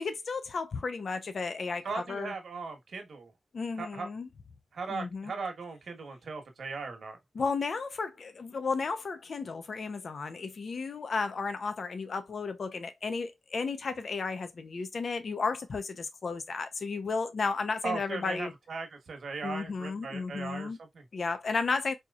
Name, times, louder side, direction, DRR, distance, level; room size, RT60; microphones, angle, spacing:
voice 1, 0.0-2.3 3.5-4.3 4.9-5.3 7.3-18.5 19.4-20.8 21.1-21.9, left 4 dB, 65° left, 0.7 m, -33 dB
voice 2, 1.8-3.3 3.8-4.1 4.7-7.2 17.8-21.0, right 4 dB, 80° right, 1.3 m, -38 dB
4.5 x 3.0 x 2.4 m
wide cardioid pair, 85°, 0 cm